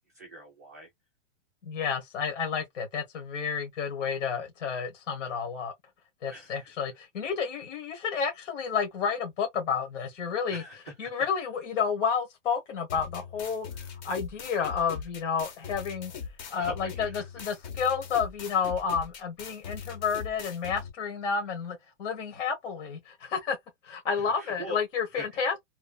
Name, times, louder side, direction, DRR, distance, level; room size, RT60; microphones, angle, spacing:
voice 1, 0.1-0.9 6.3-6.7 10.5-10.9 16.6-17.2 24.2-24.8 25.1-25.4, equal, 15° right, 0.3 m, -42 dB
voice 2, 1.6-5.7 6.2-10.6 11.0-13.7 14.0-16.1 16.5-23.6 23.8-25.5, left 6 dB, 75° left, 1.4 m, -30 dB
sound 1, 12.9-20.9, left 6 dB, 40° left, 0.9 m, -40 dB
3.1 x 2.2 x 2.3 m
supercardioid pair, 170°, 36 cm